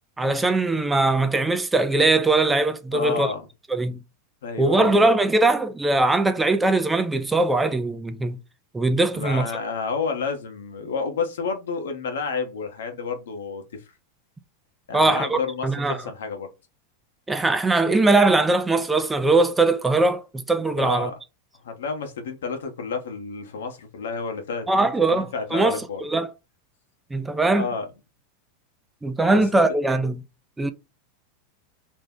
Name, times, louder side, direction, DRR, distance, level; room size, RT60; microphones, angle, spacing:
voice 1, 0.2-3.3 3.7-4.0 4.6-8.4 8.7-9.5 14.9-16.0 17.3-21.1 24.7-26.3 27.1-27.6 29.0-30.1 30.6-30.7, right 2 dB, 10° right, 0.4 m, -21 dB
voice 2, 2.9-3.5 4.4-5.1 9.1-13.8 14.9-16.5 20.8-21.1 21.6-26.0 27.5-27.9 29.3-29.5, left 5 dB, 90° left, 0.8 m, -30 dB
2.6 x 2.0 x 3.5 m
supercardioid pair, 125°, 0 cm